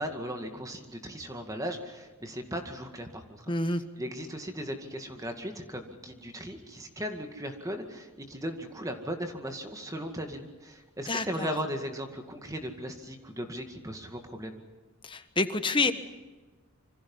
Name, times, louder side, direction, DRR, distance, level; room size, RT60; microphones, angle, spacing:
voice 1, 0.0-14.6, equal, 15° right, 5 dB, 2.1 m, -37 dB
voice 2, 3.5-3.8 11.1-11.5 15.0-15.9, left 3 dB, 20° left, 10 dB, 1.3 m, -28 dB
27.0 x 25.5 x 5.5 m, 1.2 s
head